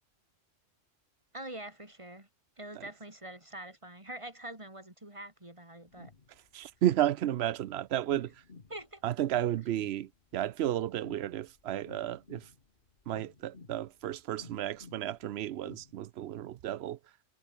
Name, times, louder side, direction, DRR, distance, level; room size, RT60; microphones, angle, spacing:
voice 1, 1.3-2.3 2.6-6.1 6.6-6.7 8.7-9.1, right 1 dB, 25° right, 3.9 m, -45 dB
sound 1, 5.9-15.9, left 4 dB, 45° left, 1.8 m, -54 dB
voice 2, 6.5-8.3 9.0-12.5 13.1-17.0, right 12 dB, 65° right, 0.8 m, -32 dB
omnidirectional pair, 1.3 m